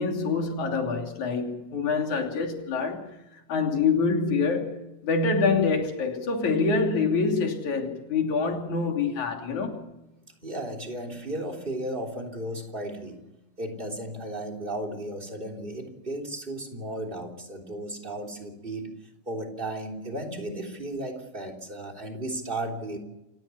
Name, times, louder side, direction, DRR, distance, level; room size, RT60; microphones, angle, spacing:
voice 1, 0.0-3.1 3.3-9.8, left 4 dB, 70° left, 4.3 m, -26 dB
voice 2, 10.4-13.2 13.6-18.9 19.2-23.0, right 1 dB, 15° right, 3.3 m, -34 dB
28.5 x 16.0 x 7.1 m
omnidirectional pair, 3.5 m